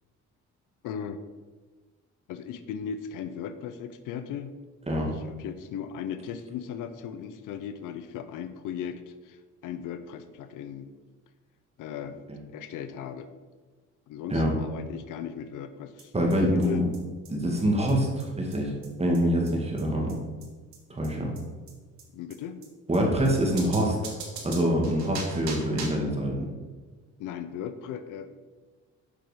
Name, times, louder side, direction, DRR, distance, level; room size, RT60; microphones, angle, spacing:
voice 1, 0.8-1.2 2.3-4.6 5.1-10.9 11.8-12.2 12.5-13.3 14.1-16.1 16.5-16.8 22.1-22.6 25.0-25.1 27.2-28.3, left 8 dB, 90° left, 11 dB, 0.6 m, -37 dB
sound 1, 16.0-16.1 16.3-16.4 16.6-16.7 16.9-17.0 17.2-17.3 17.6-17.7 17.9-18.0 18.2-18.3 18.5-18.6 18.8-18.9 19.1-19.2 19.5-19.6 19.8-19.9 20.1-20.2 20.4-20.5 20.7-20.8 21.0-21.1 21.3-21.4 21.7-21.8 22.0-22.1 22.3-22.4 22.6-22.7 22.9-23.0 23.2-23.3 23.6-26.1, right 4 dB, 65° right, 1.9 m, -40 dB
voice 2, 16.1-16.8 17.3-20.2 20.9-21.3 22.9-24.1 24.4-26.5, equal, 20° right, -1 dB, 2.0 m, -25 dB
6.7 x 6.2 x 5.1 m, 1.3 s
cardioid pair, 90°, 30 cm